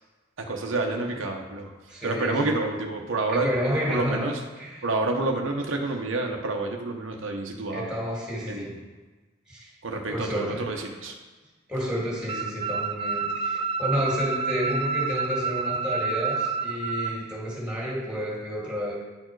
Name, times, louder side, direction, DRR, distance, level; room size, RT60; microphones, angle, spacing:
voice 1, 0.4-1.7 2.0-3.5 3.9-4.4 4.8-7.9 8.5-8.8 9.8-11.2, right 2 dB, 80° right, 2 dB, 0.8 m, -28 dB
voice 2, 1.9-2.6 3.3-4.3 4.6-4.8 7.7-8.8 9.5-9.7 10.1-10.6 11.7-18.9, equal, 5° right, -4 dB, 2.0 m, -30 dB
sound 1, 12.3-17.1, right 4 dB, 30° right, 0.3 m, -28 dB
9.8 x 4.5 x 4.6 m, 1.3 s
head